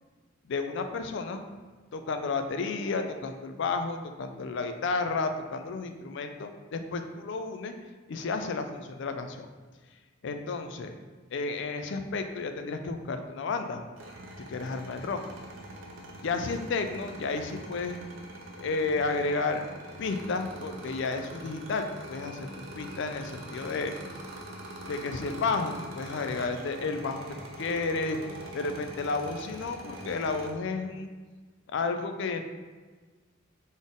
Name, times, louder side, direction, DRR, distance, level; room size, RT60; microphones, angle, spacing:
voice 1, 0.4-1.4 1.9-7.7 8.1-9.5 10.2-11.0 11.3-13.8 14.5-15.2 16.2-18.0 18.6-19.6 20.0-22.5 22.8-23.9 24.9-27.2 27.6-28.2 28.5-31.1 31.7-32.5, left 4 dB, 65° left, 7 dB, 0.4 m, -32 dB
sound 1, 14.0-30.5, right 1 dB, 75° right, 0.8 m, -44 dB
4.1 x 3.6 x 3.6 m, 1.4 s
head